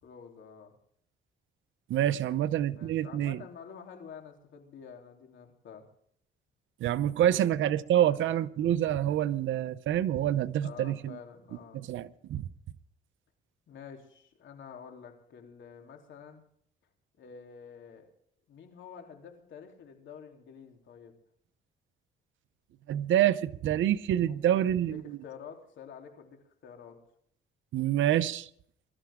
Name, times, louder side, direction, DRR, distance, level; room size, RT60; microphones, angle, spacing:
voice 1, 0.0-0.7 2.2-2.4 2.7-5.9 7.3-7.5 8.0-8.2 10.6-11.8 13.7-16.4 17.2-18.1 18.5-21.2 24.2-27.0, left 7 dB, 70° left, 3.5 m, -49 dB
voice 2, 1.9-3.4 6.8-11.2 11.7-12.4 22.9-25.0 27.7-28.5, right 11 dB, 75° right, 0.8 m, -27 dB
22.0 x 13.0 x 3.7 m
cardioid pair, 90°, 20 cm